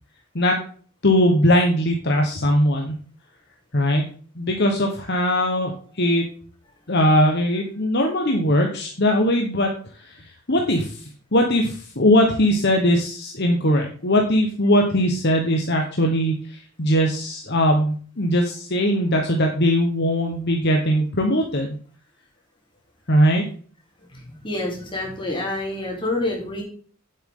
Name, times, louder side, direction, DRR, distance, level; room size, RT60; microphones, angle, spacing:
voice 1, 1.0-3.0 3.7-4.1 4.4-6.2 6.9-9.7 10.0-21.7 23.1-23.4, equal, 50° left, 2 dB, 1.4 m, -20 dB
voice 2, 24.1-26.6, left 2 dB, 20° left, -2 dB, 3.8 m, -28 dB
9.5 x 8.0 x 3.9 m, 0.44 s
head